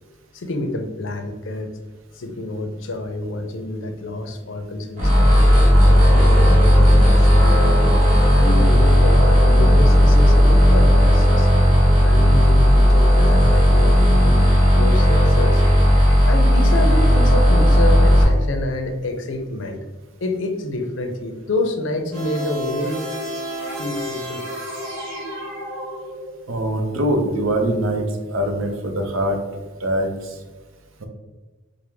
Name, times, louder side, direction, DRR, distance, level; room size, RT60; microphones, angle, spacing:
voice 1, 0.3-1.7 2.1-5.4 5.9-7.8 8.3-11.7 12.0-14.4 14.7-15.6 16.3-19.8 20.2-23.0 23.7-24.5, left 2 dB, 70° left, 5 dB, 0.5 m, -28 dB
sound 1, 5.0-18.2, equal, 40° right, 1.4 m, -14 dB
sound 2, 5.3-11.2, left 1 dB, 10° right, 0.3 m, -32 dB
sound 3, 22.1-26.5, equal, 70° right, 1.4 m, -31 dB
voice 2, 26.5-29.4 29.8-30.4 31.0-31.1, right 1 dB, 85° right, 4 dB, 0.7 m, -23 dB
4.7 x 2.1 x 3.4 m, 1.3 s
head